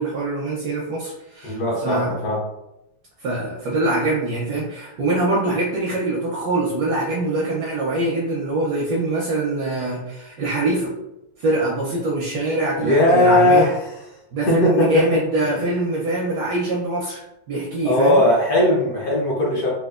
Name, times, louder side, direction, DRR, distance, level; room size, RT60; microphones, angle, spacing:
voice 1, 0.0-2.1 3.2-10.9 11.4-13.7 14.3-17.2 17.5-18.2, right 2 dB, 75° right, -3 dB, 0.9 m, -23 dB
voice 2, 1.4-2.4 12.8-13.7 14.5-15.0 15.6-15.7 17.8-19.7, left 1 dB, 60° left, -5 dB, 1.1 m, -18 dB
4.2 x 2.4 x 2.3 m, 0.90 s
omnidirectional pair, 2.3 m